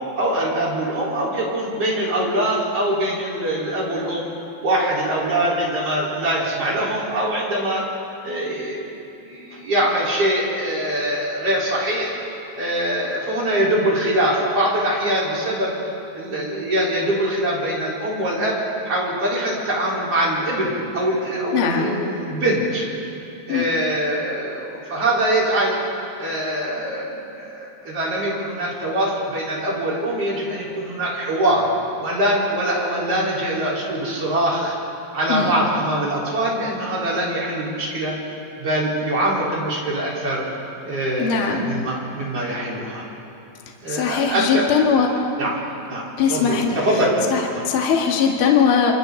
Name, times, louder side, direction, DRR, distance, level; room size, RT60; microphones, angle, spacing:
voice 1, 0.2-4.3 4.6-7.8 8.2-8.8 9.2-12.1 12.6-15.7 16.1-18.6 18.8-22.9 23.5-25.8 26.2-31.7 32.0-34.7 35.1-38.1 38.6-40.4 40.8-43.1 43.8-45.1 45.4-47.2 47.5-47.6, right 1 dB, 30° right, -6 dB, 5.2 m, -23 dB
voice 2, 21.5-22.0 23.5-23.6 35.3-35.5 41.2-41.7 43.9-45.1 46.2-46.8 47.3-48.9, left 6 dB, 50° left, 0 dB, 1.6 m, -20 dB
28.5 x 27.0 x 4.1 m, 2.7 s
omnidirectional pair, 5.6 m